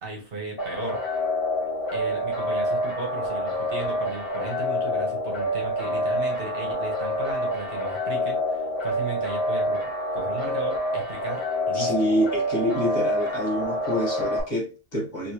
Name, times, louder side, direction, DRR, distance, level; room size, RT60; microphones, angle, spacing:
voice 1, 0.0-1.1 1.9-12.1, right 3 dB, 60° right, 0 dB, 1.3 m, -36 dB
sound 1, 0.6-14.4, left 1 dB, 60° left, 1.5 m, -27 dB
voice 2, 11.7-15.3, equal, 45° left, -4 dB, 1.4 m, -26 dB
3.1 x 3.0 x 2.9 m, 0.33 s
omnidirectional pair, 1.1 m